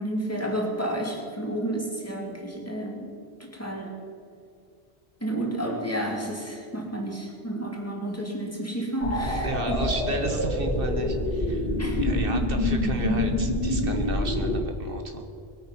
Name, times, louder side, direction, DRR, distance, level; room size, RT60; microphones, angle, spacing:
voice 1, 0.0-3.1 3.4-4.0 5.2-9.9 11.8-12.1 12.7-12.8, right 1 dB, 15° left, -1 dB, 2.5 m, -31 dB
sound 1, 9.0-14.6, left 1 dB, 70° left, 2.2 m, -26 dB
voice 2, 9.3-11.7 12.0-15.3, right 3 dB, 65° right, 5 dB, 1.3 m, -33 dB
21.0 x 8.9 x 5.7 m, 2.4 s
omnidirectional pair, 1.0 m